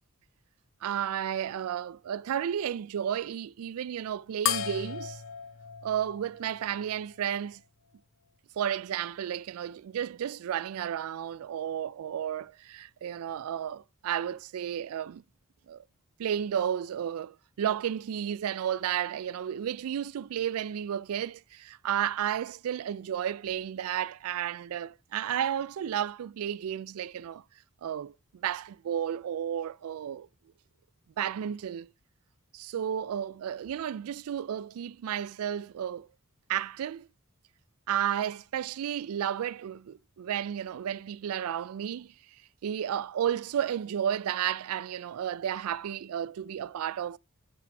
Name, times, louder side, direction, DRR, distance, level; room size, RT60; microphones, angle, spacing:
voice 1, 0.8-5.2 5.8-7.6 8.6-15.2 15.7-15.8 16.2-27.4 27.8-30.3 31.2-31.9 32.5-36.1 36.5-37.1 37.9-42.1 42.6-47.2, right 9 dB, 75° right, 0.3 m, -32 dB
sound 1, 4.5-7.3, left 9 dB, 60° left, 0.6 m, -35 dB
7.5 x 5.9 x 3.4 m
head